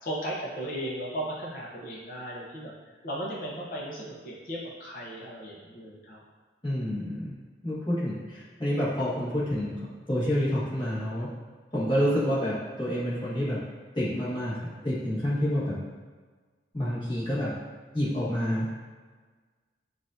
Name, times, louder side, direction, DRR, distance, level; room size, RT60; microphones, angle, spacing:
voice 1, 0.0-6.2, right 1 dB, 45° left, -4 dB, 0.7 m, -36 dB
voice 2, 6.6-7.3 7.6-9.7 10.1-11.3 11.7-13.6 13.9-15.8 16.7-17.5 17.9-18.7, equal, 25° left, -10 dB, 1.4 m, -28 dB
6.3 x 2.5 x 2.6 m, 1.4 s
head